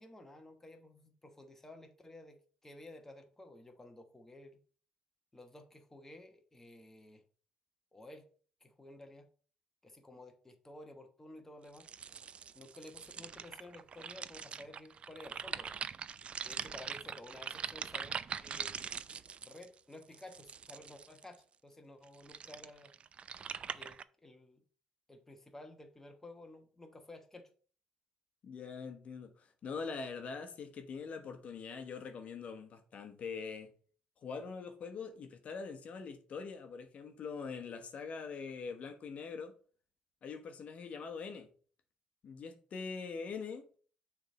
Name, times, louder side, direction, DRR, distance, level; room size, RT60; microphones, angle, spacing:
voice 1, 0.0-4.6 5.3-7.2 7.9-8.3 8.6-9.3 9.8-11.9 12.5-15.7 16.4-18.7 19.4-22.9 23.7-24.6 25.1-27.5, left 1 dB, 15° left, 1.1 m, -53 dB
sound 1, 11.7-21.4 22.0-24.0, right 7 dB, 45° right, 0.4 m, -43 dB
voice 2, 28.4-33.7 34.2-39.5 40.2-41.5 42.2-43.6, left 5 dB, 55° left, 1.0 m, -43 dB
6.4 x 3.4 x 5.3 m
cardioid pair, 85°, 3 cm